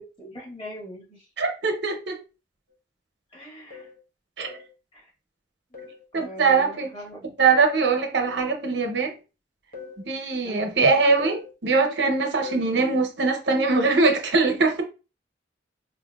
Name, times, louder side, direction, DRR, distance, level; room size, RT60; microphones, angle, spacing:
voice 1, 0.2-1.3 3.3-3.9 4.9-5.1 5.7-7.3 10.4-10.7, equal, 30° left, 1.8 m, -41 dB
voice 2, 1.4-2.2 4.4-4.6 6.1-6.9 7.4-9.1 10.0-14.8, right 4 dB, 65° right, 0.8 m, -22 dB
sound 1, 2.7-2.8 3.7-4.0 4.4-4.7 5.7-6.0 6.5-6.8 8.2-8.5 9.7-10.0 11.2-11.5 12.4-12.7, left 5 dB, 50° left, 1.0 m, -40 dB
4.5 x 2.7 x 2.3 m
head